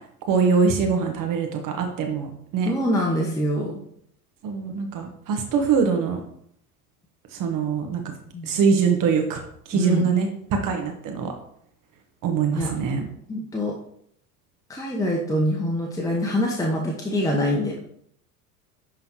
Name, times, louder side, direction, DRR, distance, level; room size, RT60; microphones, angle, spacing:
voice 1, 0.3-2.3 2.5-2.7 4.4-6.2 7.4-8.0 8.5-9.4 9.7-10.3 10.6-11.3 12.2-13.0, right 5 dB, 45° right, 4 dB, 1.4 m, -23 dB
voice 2, 2.6-3.8 8.3-8.5 9.7-10.2 12.5-12.7 13.3-13.8 14.7-17.8, equal, 5° left, -1 dB, 1.1 m, -25 dB
11.0 x 3.8 x 3.1 m, 0.68 s
hypercardioid pair, 80°, 46 cm